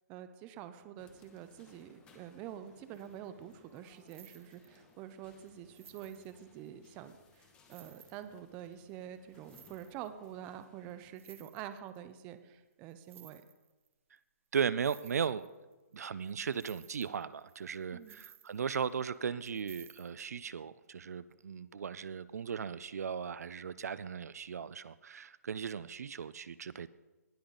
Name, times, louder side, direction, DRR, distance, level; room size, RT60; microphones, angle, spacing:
voice 1, 0.1-13.4 17.9-18.2, right 10 dB, 15° right, 11 dB, 0.4 m, -47 dB
sound 1, 1.0-11.1, left 4 dB, 10° left, 1.0 m, -63 dB
sound 2, 2.9-3.2 3.4-4.9 5.4-5.5 5.7-6.9 7.3-7.4 7.7-8.7 9.3-10.3 10.6-10.7 10.9-12.0 12.9-13.9 14.2-14.3 14.6-16.0 16.2-19.0 19.4-20.1, right 8 dB, 50° right, 0.8 m, -58 dB
voice 2, 14.5-15.5 15.9-26.9, right 7 dB, 65° right, 16 dB, 0.5 m, -37 dB
19.0 x 7.0 x 3.9 m, 1.1 s
hypercardioid pair, 160°, 9 cm